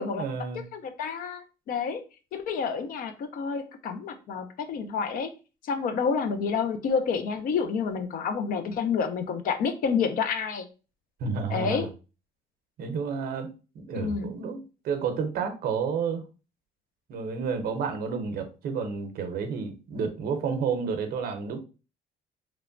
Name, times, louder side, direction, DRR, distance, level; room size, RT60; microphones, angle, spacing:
voice 1, 0.0-0.6 11.2-11.9 12.8-14.6 14.8-16.2 17.1-21.6, right 5 dB, 65° right, 0.6 m, -30 dB
voice 2, 0.5-2.0 2.3-5.3 5.6-10.7 11.5-11.9 13.9-14.3, left 6 dB, 55° left, 0.5 m, -29 dB
2.9 x 2.1 x 2.4 m
cardioid pair, 110°, 17 cm